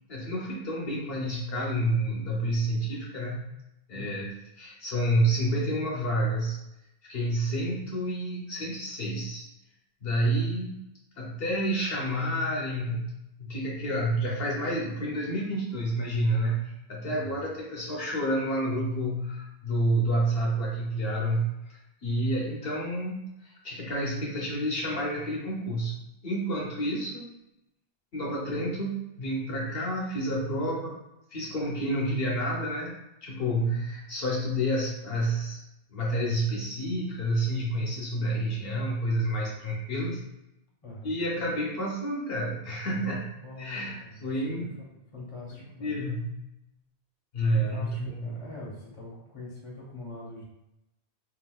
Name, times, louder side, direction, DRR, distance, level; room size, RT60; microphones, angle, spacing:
voice 1, 0.1-3.4 3.9-6.6 7.0-9.4 10.0-10.9 11.2-13.1 13.4-26.0 26.2-27.3 28.1-31.0 31.3-32.9 33.2-35.6 35.9-40.3 41.0-43.3 43.6-44.8 45.6-46.4 47.3-48.4, right 1 dB, 65° left, -4 dB, 0.9 m, -29 dB
voice 2, 3.9-4.3 17.0-17.4 33.4-33.8 40.8-41.2 43.4-46.1 47.5-50.4, left 2 dB, 30° left, -4 dB, 0.9 m, -42 dB
3.7 x 2.6 x 2.2 m, 0.88 s
omnidirectional pair, 1.1 m